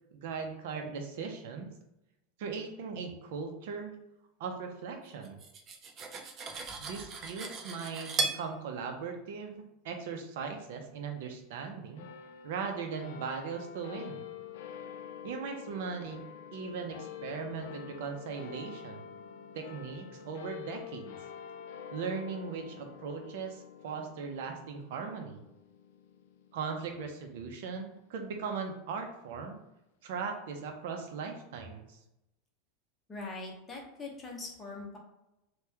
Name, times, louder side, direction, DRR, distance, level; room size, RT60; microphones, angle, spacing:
voice 1, 0.1-1.7 2.4-3.9 4.4-5.4 6.8-12.1 12.4-14.3 15.2-16.2 16.5-19.1 19.5-21.2 21.9-25.4 26.5-29.6 30.0-32.0, right 5 dB, 70° right, 4 dB, 0.6 m, -39 dB
Cutlery silverware, 5.2-8.4, right 3 dB, 30° right, 0.4 m, -36 dB
sound 1, 12.0-28.7, left 8 dB, 80° left, 0.3 m, -47 dB
voice 2, 33.1-35.0, left 3 dB, 15° left, -2 dB, 0.7 m, -42 dB
2.8 x 2.3 x 3.4 m, 0.90 s
supercardioid pair, 150°, 0 cm